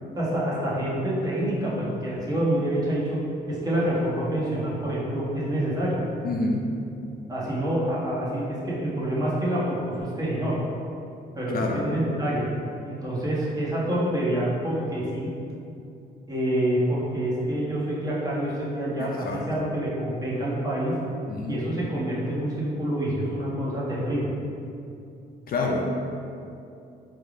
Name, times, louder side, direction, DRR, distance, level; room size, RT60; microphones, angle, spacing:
voice 1, 0.0-3.2 3.5-6.0 7.3-10.6 11.3-12.5 12.8-15.3 16.3-20.9 21.5-24.3, right 1 dB, 20° right, -8 dB, 1.4 m, -27 dB
voice 2, 6.2-6.7 11.5-11.8 19.0-19.5 21.3-21.6 25.5-25.8, left 3 dB, 50° left, 0 dB, 0.5 m, -28 dB
4.5 x 3.4 x 2.5 m, 2.6 s
supercardioid pair, 70°, 19 cm